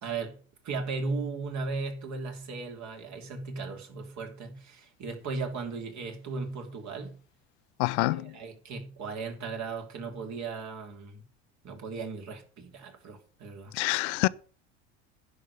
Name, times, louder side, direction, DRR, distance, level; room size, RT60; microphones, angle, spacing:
voice 1, 0.0-0.4 0.6-7.2 8.1-11.2 11.6-13.7, right 4 dB, 50° right, 3.3 m, -36 dB
voice 2, 7.8-8.4 13.7-14.3, left 22 dB, 70° left, 0.7 m, -26 dB
10.5 x 5.4 x 8.4 m
hypercardioid pair, 85°, 36 cm